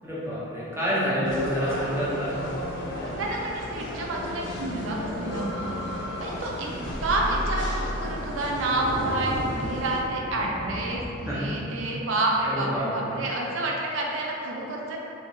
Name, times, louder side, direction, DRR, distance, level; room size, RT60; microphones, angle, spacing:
voice 1, 0.0-2.3 6.7-6.8 11.3-11.5 12.4-12.9, equal, 15° right, -9 dB, 0.7 m, -28 dB
sound 1, 1.2-10.0, left 1 dB, 60° left, 0.5 m, -33 dB
voice 2, 3.0-5.8 6.2-6.7 7.0-15.0, right 2 dB, 75° right, -2 dB, 0.4 m, -29 dB
Thunder, 4.2-4.3 4.7-4.8 5.2-5.3 5.6-5.7 5.9-11.1, equal, 30° left, 0.9 m, -37 dB
3.5 x 2.7 x 3.0 m, 3.0 s
head